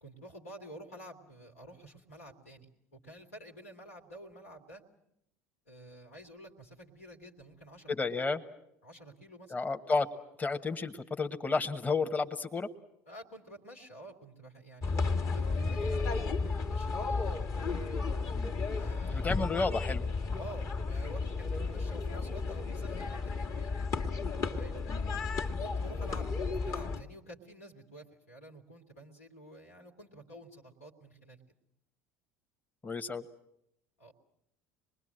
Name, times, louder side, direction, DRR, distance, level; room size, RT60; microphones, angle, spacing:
voice 1, 0.0-4.8 5.7-7.9 8.8-9.6 13.1-17.1 18.7-19.3 20.4-23.7 24.5-24.9 25.6-26.3 26.5-31.4 34.0-34.1, right 1 dB, 90° left, 1 dB, 2.5 m, -50 dB
voice 2, 8.0-8.4 9.5-10.1 10.4-12.7 18.3-18.5 19.1-20.0 32.8-33.2, left 4 dB, 20° left, 7 dB, 1.3 m, -31 dB
sound 1, 14.8-27.0, left 4 dB, 45° left, 1.7 m, -33 dB
26.0 x 20.5 x 7.7 m, 0.80 s
hypercardioid pair, 70°, 7 cm